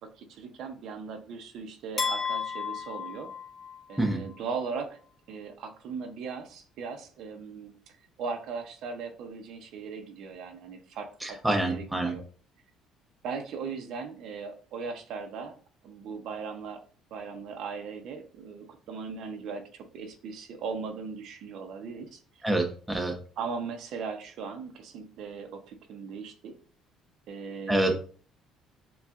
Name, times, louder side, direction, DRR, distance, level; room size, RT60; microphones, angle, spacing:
voice 1, 0.0-3.3 3.9-5.0 5.3-12.2 13.2-15.5 15.8-16.8 17.1-22.4 23.4-26.5 27.3-28.0, right 5 dB, 65° right, 5 dB, 0.7 m, -38 dB
sound 1, 2.0-4.1, left 5 dB, 25° left, 1.5 m, -33 dB
voice 2, 11.2-12.1 22.4-23.1 27.7-28.0, right 1 dB, 5° right, 2 dB, 0.7 m, -26 dB
6.7 x 2.4 x 2.4 m, 0.41 s
cardioid pair, 125°, 0 cm